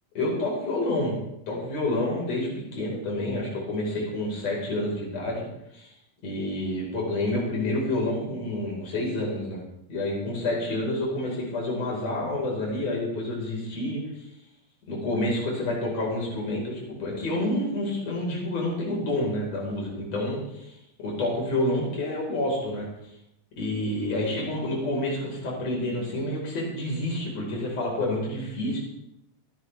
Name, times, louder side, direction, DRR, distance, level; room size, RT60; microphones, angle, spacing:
voice 1, 0.2-1.2 1.5-5.4 5.7-5.9 6.2-9.6 9.9-14.3 14.9-22.9 23.6-28.8, left 1 dB, 45° left, -3 dB, 5.9 m, -28 dB
28.0 x 9.7 x 3.5 m, 0.80 s
omnidirectional pair, 4.0 m